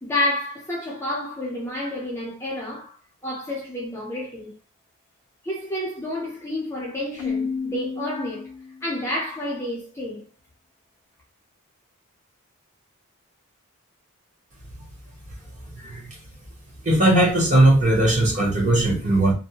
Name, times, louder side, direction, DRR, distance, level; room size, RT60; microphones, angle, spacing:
voice 1, 0.0-3.0 3.2-4.5 5.4-8.5 8.8-10.3, left 1 dB, 10° left, 0.5 m, -29 dB
Keyboard (musical), 7.2-9.0, left 5 dB, 85° left, 0.4 m, -31 dB
voice 2, 16.8-19.3, right 1 dB, 35° right, 0.9 m, -18 dB
2.6 x 2.1 x 2.7 m
head